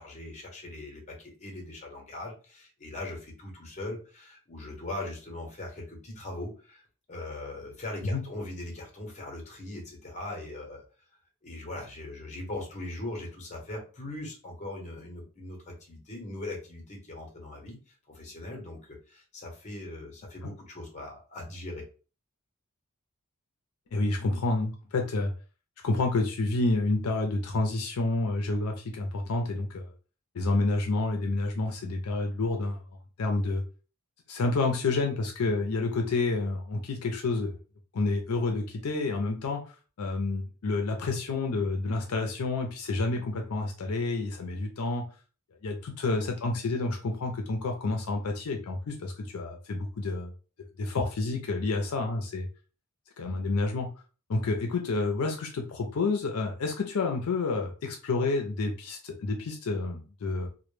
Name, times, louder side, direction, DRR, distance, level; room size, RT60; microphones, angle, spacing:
voice 1, 0.0-10.8 11.4-21.8, left 2 dB, 35° left, 1 dB, 0.8 m, -40 dB
voice 2, 23.9-25.3 25.8-29.9 30.3-32.8 33.2-33.6 34.3-37.6 37.9-39.6 40.0-45.1 45.6-50.3 50.8-52.5 53.2-53.9 54.3-60.5, left 3 dB, 80° left, 3 dB, 0.5 m, -29 dB
2.1 x 2.1 x 3.1 m, 0.36 s
head